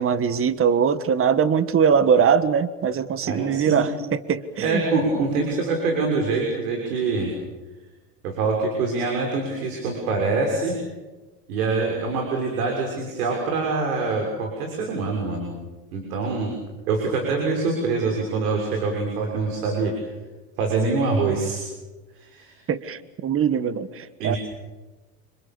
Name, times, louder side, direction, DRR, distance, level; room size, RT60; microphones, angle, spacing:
voice 1, 0.0-4.9 22.7-24.4, right 7 dB, 30° right, 14 dB, 1.6 m, -21 dB
voice 2, 3.3-3.9 4.6-7.3 8.2-10.8 11.5-15.5 15.9-16.5 16.9-19.9 20.6-21.6 22.1-22.6 24.2-24.4, right 3 dB, 75° right, 1 dB, 6.6 m, -24 dB
30.0 x 26.5 x 7.2 m, 1.2 s
hypercardioid pair, 105°, 46 cm